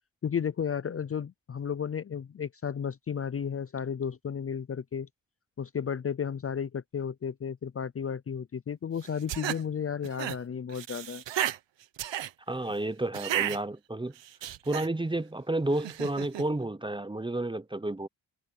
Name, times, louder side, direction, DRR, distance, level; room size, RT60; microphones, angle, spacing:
voice 1, 0.2-5.1 5.6-11.2, left 7 dB, 30° left, 0.6 m, -33 dB
sound 1, 9.0-9.6 10.0-10.4 10.7-11.6 12.0-12.3 13.1-13.6 14.2-14.9 15.8-16.4, right 12 dB, 70° right, 1.2 m, -33 dB
voice 2, 12.5-14.1 14.7-18.1, right 2 dB, 10° right, 0.7 m, -31 dB
cardioid pair, 105°, 45 cm